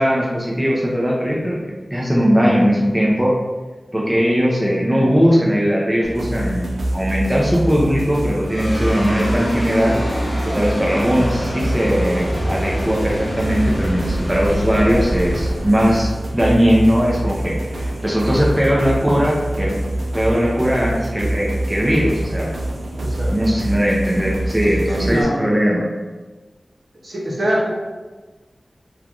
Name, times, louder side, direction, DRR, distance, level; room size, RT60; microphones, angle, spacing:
voice 1, 0.0-1.6 1.9-3.3 3.9-19.8 20.1-22.5 23.3-25.8, equal, 10° right, -4 dB, 0.5 m, -19 dB
sound 1, 6.0-25.2, right 1 dB, 80° right, 0.3 m, -25 dB
sound 2, 8.5-17.0, equal, 60° left, 0.7 m, -27 dB
voice 2, 23.0-23.5 25.0-25.4 27.0-27.7, equal, 60° right, -5 dB, 0.8 m, -23 dB
3.2 x 2.3 x 2.5 m, 1.3 s
wide cardioid pair, 75°, 0 cm